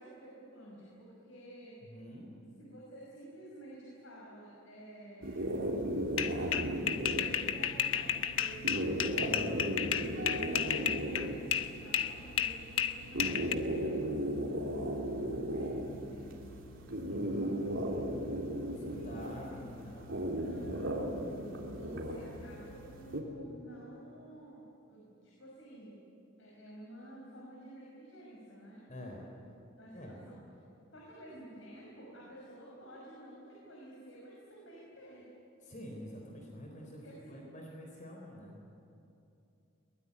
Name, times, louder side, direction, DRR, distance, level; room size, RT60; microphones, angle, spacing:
voice 1, 0.0-1.8 2.6-5.6 6.3-8.9 9.5-18.0 18.7-19.9 20.2-21.3 21.6-26.0 26.4-28.8 29.8-30.4 30.9-35.3 36.8-37.4, right 1 dB, 70° left, -4 dB, 5.9 m, -52 dB
voice 2, 1.8-2.4 9.2-9.8 17.1-17.7 18.8-20.2 20.6-20.9 28.9-29.3 29.9-30.2 35.6-38.6, equal, 40° left, 0 dB, 3.8 m, -47 dB
sound 1, 5.2-23.2, right 1 dB, 70° right, 3.4 m, -36 dB
sound 2, 6.2-11.7 11.9-13.5, left 9 dB, 85° left, 1.1 m, -32 dB
22.5 x 20.5 x 9.8 m, 2.7 s
head